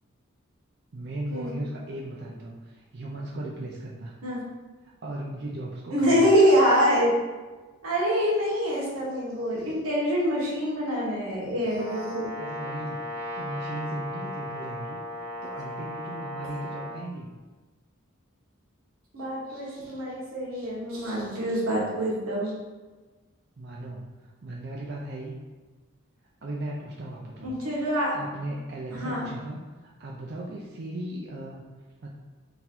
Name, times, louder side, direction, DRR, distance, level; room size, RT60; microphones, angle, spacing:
voice 1, 0.9-4.1 4.8-6.2 12.4-17.3 23.6-25.4 26.4-27.5 28.1-31.6 32.0-32.1, right 1 dB, 50° right, -3 dB, 0.4 m, -37 dB
voice 2, 5.9-7.1 7.8-12.3 19.1-22.5 27.4-28.1 28.9-29.3, equal, 90° right, -5 dB, 1.4 m, -25 dB
Brass instrument, 11.7-17.0, left 1 dB, 25° right, 1.0 m, -36 dB
3.9 x 2.6 x 4.3 m, 1.3 s
head